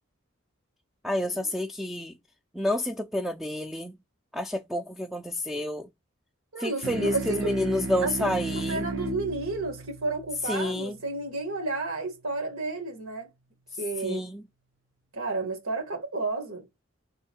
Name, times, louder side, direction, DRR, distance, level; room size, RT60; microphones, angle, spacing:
voice 1, 1.0-2.1 2.5-3.9 4.3-5.9 6.6-8.8 10.5-11.0 14.0-14.4, left 1 dB, ahead, 0.4 m, -29 dB
voice 2, 6.5-7.5 8.0-13.3 13.8-14.2 15.1-16.6, right 3 dB, 80° right, 1.6 m, -32 dB
sound 1, 6.8-11.7, right 2 dB, 55° right, 0.6 m, -35 dB
3.6 x 2.6 x 4.4 m
head